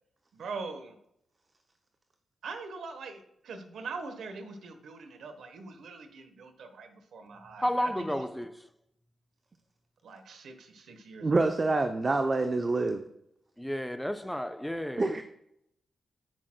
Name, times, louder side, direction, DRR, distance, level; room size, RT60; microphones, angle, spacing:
voice 1, 0.4-0.9 2.4-3.2 3.4-7.6 8.0-8.2 10.0-11.3, right 4 dB, 75° right, 1.0 m, -42 dB
voice 2, 7.6-8.5 13.6-15.2, equal, 5° left, 0.6 m, -32 dB
voice 3, 11.2-13.0 15.0-15.2, right 3 dB, 40° right, 0.6 m, -26 dB
11.5 x 6.2 x 2.2 m
supercardioid pair, 45°, 0 cm